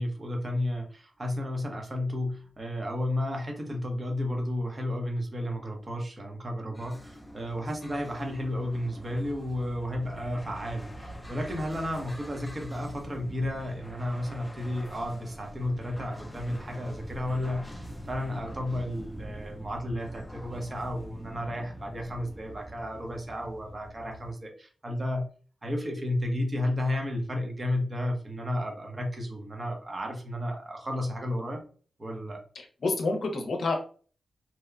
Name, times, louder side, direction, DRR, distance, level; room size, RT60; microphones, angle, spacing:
voice 1, 0.0-25.3 25.6-31.6 32.0-32.4, left 1 dB, 30° right, 2 dB, 0.7 m, -32 dB
sound 1, 6.7-24.3, equal, 10° left, 0.4 m, -44 dB
voice 2, 32.6-33.7, left 3 dB, 65° left, 3 dB, 0.6 m, -28 dB
2.8 x 2.0 x 2.4 m, 0.41 s
wide cardioid pair, 105°, 0 cm